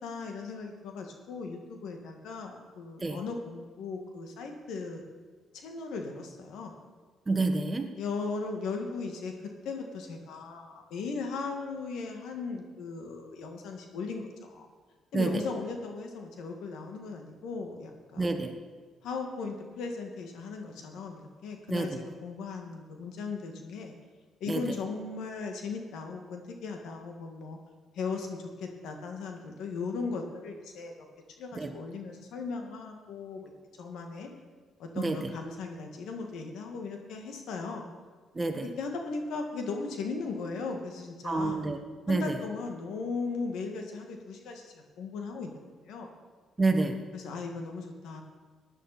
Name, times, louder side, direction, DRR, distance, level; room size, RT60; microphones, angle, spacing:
voice 1, 0.0-5.0 5.5-6.7 8.0-9.3 9.6-14.7 15.1-18.4 19.0-23.9 24.4-27.6 27.9-30.9 31.4-34.3 34.8-37.8 38.6-41.7 42.1-46.1 47.1-48.2, left 4 dB, 80° left, 3 dB, 1.8 m, -37 dB
voice 2, 7.3-7.9 15.1-15.4 18.2-18.5 21.7-22.0 24.5-24.6 31.6-31.7 35.0-35.3 38.3-38.7 41.2-41.8 42.1-42.4 46.6-47.0, right 3 dB, 25° right, 6 dB, 1.3 m, -28 dB
16.0 x 10.0 x 4.3 m, 1.5 s
cardioid pair, 90°, 0 cm